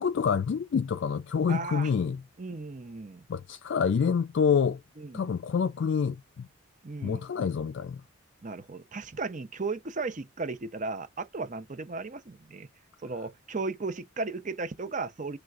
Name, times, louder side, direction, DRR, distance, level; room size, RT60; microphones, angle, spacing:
voice 1, 0.0-2.2 3.3-4.8 5.1-6.5 7.0-8.0, left 6 dB, 60° left, 0.3 m, -27 dB
voice 2, 1.5-1.9 2.4-3.2 5.0-5.3 6.8-7.2 8.4-12.7 13.0-15.4, right 3 dB, 40° right, 0.7 m, -35 dB
6.2 x 3.3 x 2.4 m
head